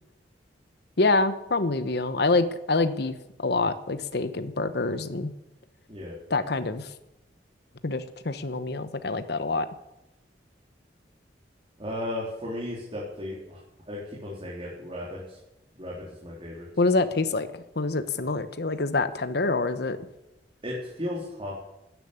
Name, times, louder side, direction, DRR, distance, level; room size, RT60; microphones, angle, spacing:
voice 1, 1.0-5.3 6.3-6.9 7.8-9.7 16.8-20.0, left 3 dB, 65° left, 11 dB, 1.0 m, -26 dB
voice 2, 11.8-13.6 13.9-15.4 15.8-16.7 20.6-21.6, left 1 dB, 30° right, -5 dB, 3.9 m, -35 dB
13.5 x 10.5 x 8.8 m, 0.91 s
head